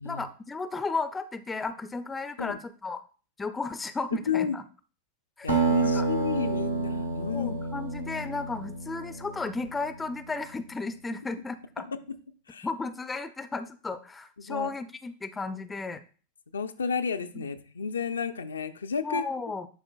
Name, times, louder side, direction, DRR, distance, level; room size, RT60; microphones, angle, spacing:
voice 1, 0.0-3.0 3.4-4.6 5.4-6.1 7.3-11.9 12.6-16.0 17.3-17.4 19.0-19.7, left 3 dB, 15° left, 11 dB, 0.5 m, -34 dB
voice 2, 5.4-7.6 11.8-12.0 12.5-12.7 14.4-14.7 16.5-19.2, left 6 dB, 70° left, 8 dB, 0.4 m, -32 dB
Acoustic guitar, 5.5-10.3, right 3 dB, 85° right, 1.2 m, -29 dB
10.5 x 4.3 x 2.3 m, 0.39 s
figure-of-eight pair, 90°, 0 cm